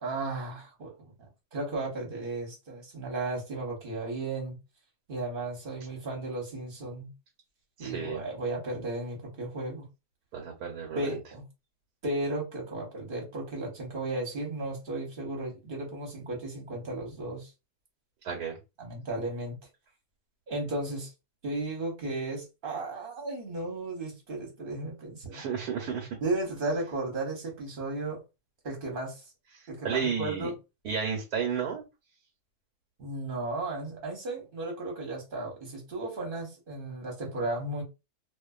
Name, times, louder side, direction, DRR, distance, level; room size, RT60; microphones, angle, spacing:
voice 1, 0.0-4.6 5.1-7.1 7.8-9.9 10.9-11.4 12.0-17.5 18.8-19.6 20.5-21.1 21.4-25.5 26.2-28.2 28.6-29.2 29.7-30.6 33.0-37.8, right 2 dB, 40° right, 0.9 m, -34 dB
voice 2, 7.8-8.2 10.3-11.2 18.2-18.6 25.3-26.1 29.5-30.5 30.8-31.8, right 7 dB, 90° right, 1.2 m, -32 dB
2.5 x 2.4 x 2.3 m
omnidirectional pair, 1.7 m